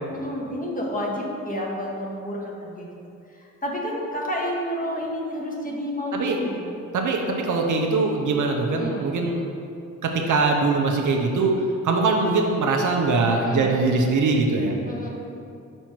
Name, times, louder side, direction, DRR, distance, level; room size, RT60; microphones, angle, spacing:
voice 1, 0.1-2.9 3.4-6.7 8.7-9.1 13.4-13.7 14.8-15.1, equal, 25° left, -2 dB, 1.3 m, -30 dB
voice 2, 6.9-9.4 10.0-11.5 11.8-14.8, right 3 dB, 65° right, 1 dB, 0.8 m, -22 dB
5.4 x 4.4 x 4.5 m, 2.6 s
cardioid pair, 60°, 33 cm